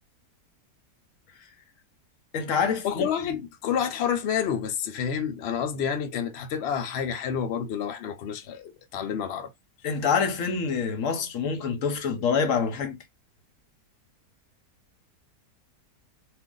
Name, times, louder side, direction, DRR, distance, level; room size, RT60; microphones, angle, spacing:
voice 1, 2.3-3.1 9.8-13.0, left 6 dB, 60° left, 0.9 m, -26 dB
voice 2, 2.8-9.5, left 8 dB, 80° left, 0.5 m, -29 dB
2.5 x 2.5 x 3.7 m
omnidirectional pair, 1.8 m